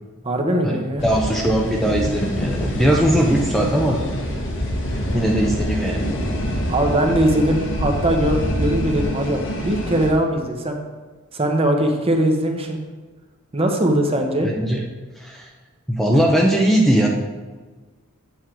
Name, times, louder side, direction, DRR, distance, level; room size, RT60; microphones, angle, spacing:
voice 1, 0.2-1.0 6.7-10.8 11.3-12.8 13.5-14.5, right 1 dB, 25° right, 3 dB, 0.9 m, -20 dB
sound 1, 1.0-10.1, equal, 60° left, 1.3 m, -25 dB
voice 2, 1.0-4.0 5.1-6.1 14.4-14.8 15.2-15.5 15.9-17.1, right 1 dB, ahead, -1 dB, 0.7 m, -19 dB
8.3 x 6.4 x 4.5 m, 1.4 s
head